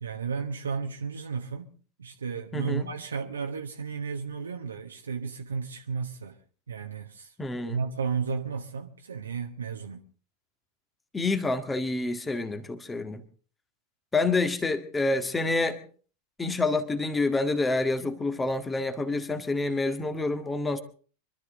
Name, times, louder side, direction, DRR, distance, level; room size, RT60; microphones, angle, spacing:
voice 1, 0.0-6.4 6.7-7.3 7.7-10.1, right 5 dB, 70° right, 1.2 m, -33 dB
voice 2, 2.5-2.9 7.4-7.8 11.1-13.2 14.1-15.8 16.4-20.8, left 3 dB, 10° left, 1.7 m, -28 dB
25.0 x 13.0 x 3.9 m
figure-of-eight pair, 90°, 0 cm